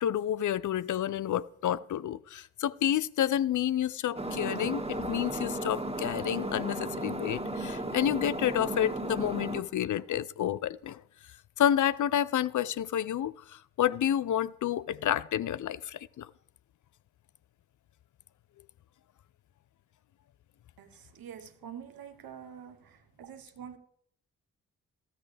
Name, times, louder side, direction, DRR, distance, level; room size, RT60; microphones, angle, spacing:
voice 1, 0.0-11.0 11.6-16.3, left 10 dB, 55° left, 0.5 m, -29 dB
sound 1, 4.1-9.6, right 1 dB, 15° right, 1.9 m, -35 dB
voice 2, 21.1-22.8 23.2-23.8, right 8 dB, 70° right, 1.2 m, -45 dB
13.5 x 13.5 x 3.4 m
supercardioid pair, 40°, 37 cm